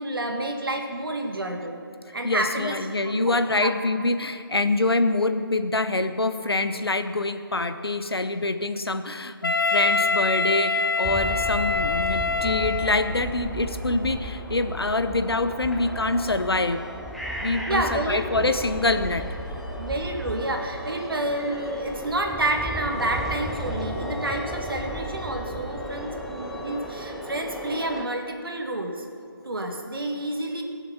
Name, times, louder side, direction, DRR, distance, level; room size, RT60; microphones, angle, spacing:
voice 1, 0.0-1.8 2.1-2.8 3.0-3.7 17.7-18.5 19.8-29.1 29.4-30.6, right 1 dB, 70° right, 3 dB, 2.0 m, -29 dB
voice 2, 2.2-16.9 17.4-19.3, left 2 dB, 90° left, 10 dB, 0.9 m, -25 dB
Wind instrument woodwind instrument, 9.4-13.3, left 4 dB, 65° left, 0.8 m, -25 dB
sound 1, 11.0-28.0, equal, ahead, 0.4 m, -34 dB
19.5 x 7.1 x 5.7 m, 2.5 s
figure-of-eight pair, 155°, 12 cm